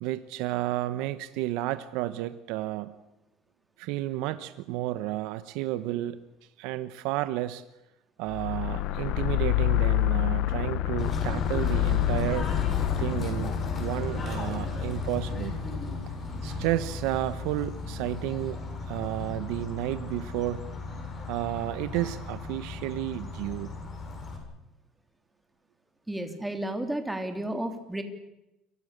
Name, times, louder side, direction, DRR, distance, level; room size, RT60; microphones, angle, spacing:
voice 1, 0.0-2.9 3.8-6.2 6.6-7.6 8.2-12.5 13.0-15.6 16.4-20.6 21.3-23.7, right 15 dB, 80° right, 11 dB, 1.2 m, -32 dB
sound 1, 8.3-16.6, left 16 dB, 65° left, 1.0 m, -29 dB
Bird / Train, 11.0-24.4, left 3 dB, 30° left, 7.9 m, -35 dB
voice 2, 26.1-28.0, right 1 dB, 5° right, 6 dB, 3.2 m, -32 dB
29.5 x 24.0 x 6.8 m, 0.93 s
cardioid pair, 140°, 0 cm